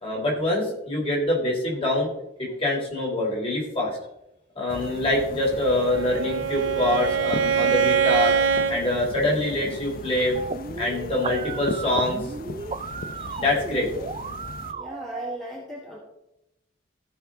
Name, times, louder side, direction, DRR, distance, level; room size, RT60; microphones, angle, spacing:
voice 1, 0.0-2.1 2.4-4.0 4.5-8.3 8.7-10.4 10.8-12.3 13.3-13.9, left 1 dB, 30° left, -3 dB, 3.2 m, -25 dB
sound 1, 4.7-14.7, left 2 dB, 45° left, 0.6 m, -38 dB
Bowed string instrument, 5.6-8.8, right 7 dB, 65° right, 0.9 m, -23 dB
sound 2, 10.4-15.4, right 4 dB, 30° right, 0.4 m, -34 dB
voice 2, 14.7-16.0, equal, ahead, -3 dB, 1.3 m, -38 dB
15.5 x 5.7 x 3.7 m, 0.85 s
head